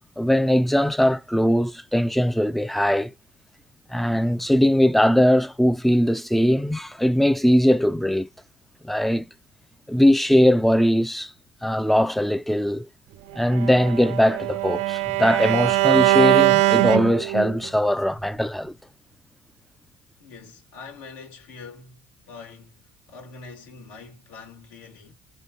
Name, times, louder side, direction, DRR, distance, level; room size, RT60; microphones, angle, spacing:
voice 1, 0.2-3.1 3.9-8.3 8.8-9.2 9.9-11.3 11.6-12.9 13.4-18.7, equal, ahead, 0.4 m, -20 dB
Bowed string instrument, 13.5-17.7, right 18 dB, 70° right, 0.4 m, -21 dB
voice 2, 20.2-25.1, left 4 dB, 85° left, 1.8 m, -44 dB
3.7 x 2.6 x 3.7 m
supercardioid pair, 80°, 12 cm